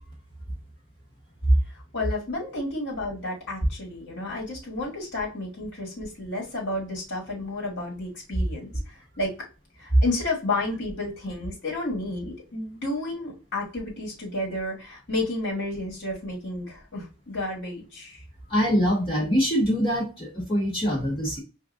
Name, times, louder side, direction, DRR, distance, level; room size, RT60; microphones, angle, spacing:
voice 1, 1.9-9.3 9.8-18.2, left 2 dB, 55° left, -2 dB, 1.8 m, -31 dB
voice 2, 18.5-21.4, equal, 30° left, -4 dB, 2.1 m, -24 dB
5.0 x 2.6 x 2.5 m, 0.31 s
head